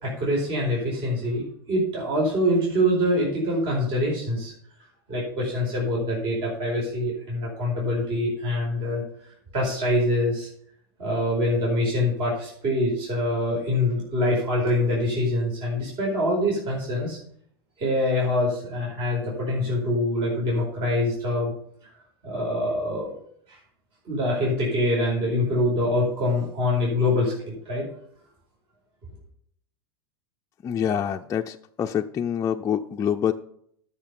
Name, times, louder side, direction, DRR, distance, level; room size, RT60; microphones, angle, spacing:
voice 1, 0.0-4.5 5.1-9.0 9.5-10.5 11.0-17.2 17.8-21.5 22.2-23.1 23.5-23.6 24.0-27.9, left 1 dB, 45° right, -3 dB, 4.7 m, -25 dB
voice 2, 30.6-33.3, left 8 dB, 25° left, 3 dB, 0.5 m, -26 dB
12.0 x 6.6 x 5.4 m, 0.67 s
hypercardioid pair, 95°, 12 cm